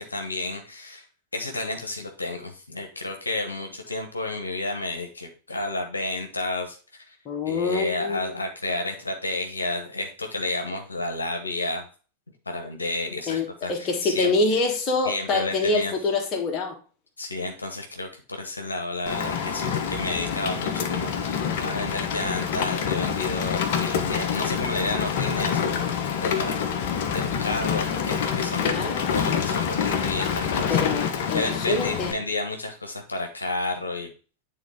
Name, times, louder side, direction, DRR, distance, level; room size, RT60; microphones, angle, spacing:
voice 1, 0.1-1.0 1.3-7.1 7.4-11.9 12.5-14.3 15.0-15.9 17.2-25.9 26.2-26.7 27.1-30.8 31.3-34.1, left 2 dB, 80° left, 3 dB, 1.1 m, -31 dB
voice 2, 7.2-8.3 13.3-16.7 28.6-29.0 30.7-32.1, left 3 dB, 30° left, 2 dB, 1.6 m, -25 dB
Rain, 19.1-32.1, left 7 dB, 50° left, 0.9 m, -26 dB
9.3 x 3.7 x 3.5 m, 0.37 s
figure-of-eight pair, 90°, 0 cm